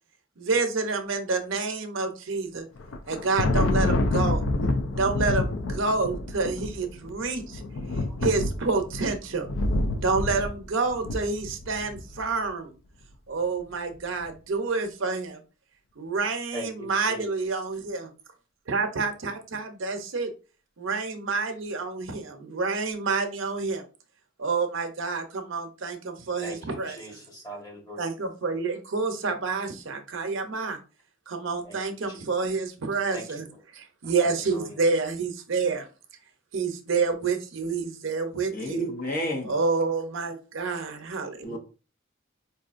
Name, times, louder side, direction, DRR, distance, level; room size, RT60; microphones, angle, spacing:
voice 1, 0.4-2.6 3.1-4.4 4.9-7.6 8.2-9.5 10.0-12.7 13.3-15.4 16.0-18.1 18.7-20.3 20.8-23.8 24.4-27.0 28.0-30.8 31.3-33.5 33.7-35.8 36.5-38.9 39.4-41.6, right 4 dB, 70° right, 0.6 m, -28 dB
Thunder, 2.8-12.2, left 2 dB, 85° left, 0.5 m, -28 dB
voice 2, 16.5-17.6 26.4-28.0 31.6-31.8 32.1-32.3 33.1-33.4 34.0-34.8, equal, 20° left, 1.2 m, -41 dB
voice 3, 38.5-39.5 41.4-41.6, equal, 45° left, 0.8 m, -30 dB
4.4 x 2.6 x 2.4 m
head